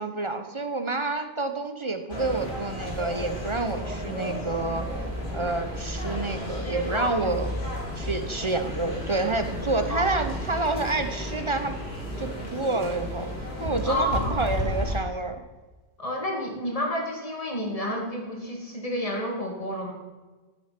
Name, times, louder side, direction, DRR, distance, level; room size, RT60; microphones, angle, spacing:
voice 1, 0.0-4.9 5.3-7.6 8.0-11.8 12.2-13.3 13.6-15.4, right 2 dB, 30° right, 8 dB, 0.7 m, -28 dB
sound 1, 2.1-15.0, left 1 dB, 60° left, 3.1 m, -33 dB
voice 2, 6.6-7.3 9.9-10.0 13.9-14.3 16.0-19.9, equal, 30° left, 0 dB, 2.3 m, -30 dB
13.5 x 6.5 x 5.8 m, 1.2 s
omnidirectional pair, 1.2 m